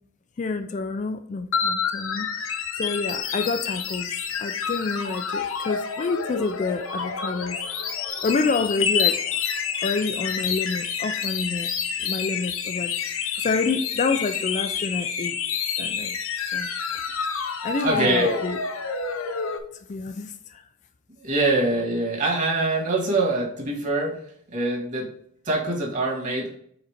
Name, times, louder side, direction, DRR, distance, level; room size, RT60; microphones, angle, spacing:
voice 1, 0.4-4.1 4.4-7.6 8.2-9.2 9.8-11.7 12.0-12.9 13.4-15.4 15.8-16.2 16.5-16.7 17.6-18.6 19.9-20.6, left 4 dB, 35° left, 0.3 m, -28 dB
sound 1, 1.5-19.6, left 6 dB, 90° left, 0.8 m, -28 dB
voice 2, 17.8-18.4 21.2-24.1 24.5-25.1 25.5-26.6, right 2 dB, 40° right, 2.0 m, -24 dB
5.0 x 4.1 x 5.0 m
head